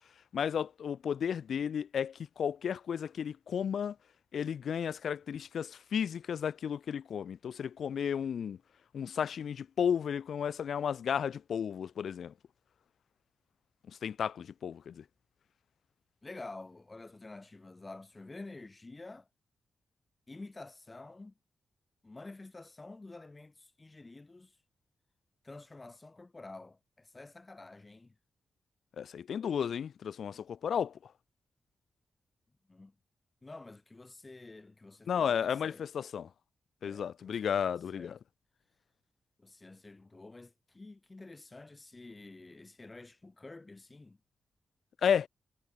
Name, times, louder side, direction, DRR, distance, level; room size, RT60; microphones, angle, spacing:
voice 1, 0.3-4.0 4.3-8.6 8.9-12.3 14.0-15.0 29.0-30.9 35.1-36.3 36.8-38.2 45.0-45.3, left 8 dB, 70° left, 2.1 m, -33 dB
voice 2, 16.2-19.3 20.3-21.3 22.0-24.5 25.4-28.2 32.7-32.9 33.4-35.8 36.8-38.2 39.4-44.2, left 2 dB, 20° left, 5.8 m, -49 dB
wide cardioid pair, 135°, 0 cm